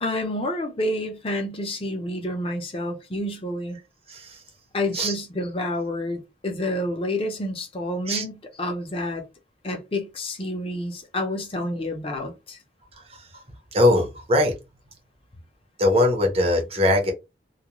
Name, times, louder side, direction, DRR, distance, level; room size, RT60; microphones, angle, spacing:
voice 1, 0.0-3.8 4.7-9.2 9.6-12.6, left 1 dB, 30° left, 0.6 m, -29 dB
voice 2, 4.1-4.4 4.9-5.1 8.1-8.2 12.9-13.3 13.7-14.5 15.8-17.1, left 1 dB, 35° right, 0.7 m, -21 dB
2.3 x 2.1 x 2.9 m
head